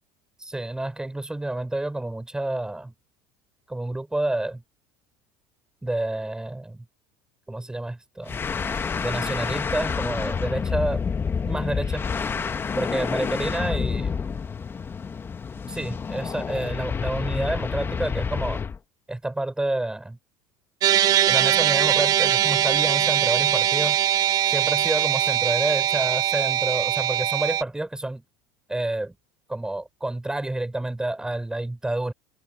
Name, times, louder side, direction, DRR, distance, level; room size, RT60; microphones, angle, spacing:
voice 1, 0.4-2.9 3.7-4.6 5.8-6.9 7.5-8.4 9.0-11.0 11.5-12.1 12.8-14.2 15.7-18.6 19.1-20.2 21.3-24.0 24.5-28.2 28.7-29.1 29.5-32.1, right 2 dB, 10° right, 4.6 m, -29 dB
sound 1, 8.3-18.8, left 6 dB, 25° left, 1.4 m, -28 dB
sound 2, 20.8-27.6, right 11 dB, 50° right, 3.3 m, -21 dB
supercardioid pair, 105°, 9 cm